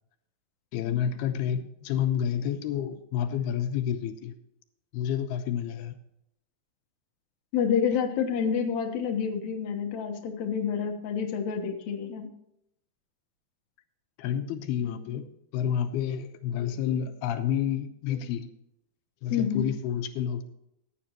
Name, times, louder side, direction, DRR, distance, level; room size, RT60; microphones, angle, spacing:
voice 1, 0.7-4.3 4.9-6.0 14.2-18.5 19.2-20.4, left 9 dB, 80° left, 8 dB, 2.6 m, -29 dB
voice 2, 7.5-12.3 19.3-19.7, left 7 dB, 60° left, 4 dB, 2.0 m, -28 dB
15.0 x 10.0 x 3.0 m, 0.77 s
omnidirectional pair, 4.6 m